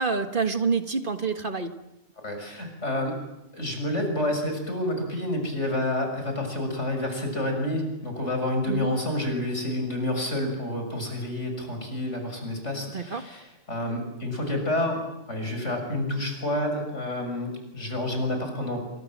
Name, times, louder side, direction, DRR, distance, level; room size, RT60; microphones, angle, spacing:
voice 1, 0.0-1.7 8.7-8.9 12.9-13.2, right 4 dB, 45° right, 7 dB, 1.7 m, -27 dB
voice 2, 2.2-3.1 3.5-15.0 15.3-18.8, left 1 dB, 75° left, 4 dB, 6.9 m, -29 dB
28.5 x 25.5 x 7.5 m, 0.90 s
omnidirectional pair, 1.2 m